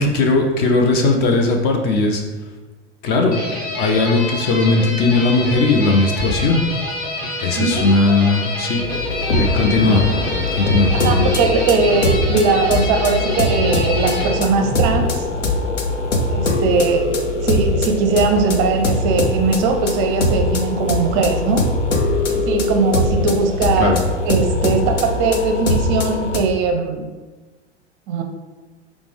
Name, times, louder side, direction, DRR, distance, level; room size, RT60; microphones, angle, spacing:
voice 1, 0.0-2.2 3.0-3.4 3.8-6.7 7.4-8.8 9.3-10.0 10.3-11.3 23.8-24.0, left 3 dB, 30° left, 3 dB, 0.4 m, -17 dB
sound 1, 3.3-14.3, left 2 dB, 55° left, 1.0 m, -27 dB
sound 2, 8.8-26.4, left 2 dB, 85° left, 0.6 m, -21 dB
Thunder / Rain, 9.3-25.3, equal, 15° left, 1.4 m, -36 dB
voice 2, 11.0-15.2 16.3-17.1 17.4-21.7 22.3-23.9 24.3-27.1 28.1-28.2, right 4 dB, 40° right, 4 dB, 0.5 m, -19 dB
4.9 x 2.0 x 3.3 m, 1.3 s
figure-of-eight pair, 90°, 35 cm